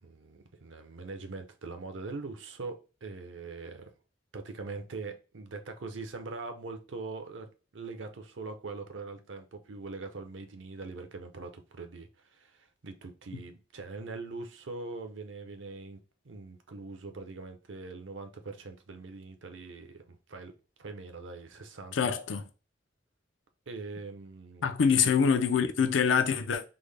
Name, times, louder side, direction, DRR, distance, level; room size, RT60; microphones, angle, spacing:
voice 1, 0.0-3.9 4.3-16.0 16.2-20.5 20.8-22.1 23.7-24.8, right 3 dB, 80° right, 0.6 m, -42 dB
voice 2, 21.9-22.4 24.6-26.6, left 6 dB, 85° left, 0.5 m, -25 dB
3.7 x 2.1 x 3.3 m
head